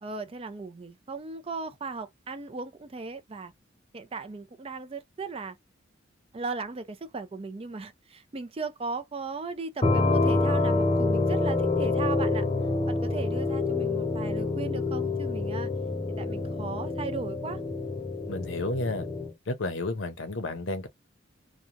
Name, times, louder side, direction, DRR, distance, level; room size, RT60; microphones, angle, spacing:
voice 1, 0.0-3.5 3.9-5.6 6.3-12.4 12.9-15.7 16.2-17.6, right 4 dB, 30° right, 0.5 m, -37 dB
sound 1, 9.8-19.3, left 3 dB, 25° left, 0.5 m, -27 dB
voice 2, 18.3-19.1 19.5-20.9, left 2 dB, 80° left, 0.7 m, -31 dB
3.0 x 2.2 x 2.5 m
head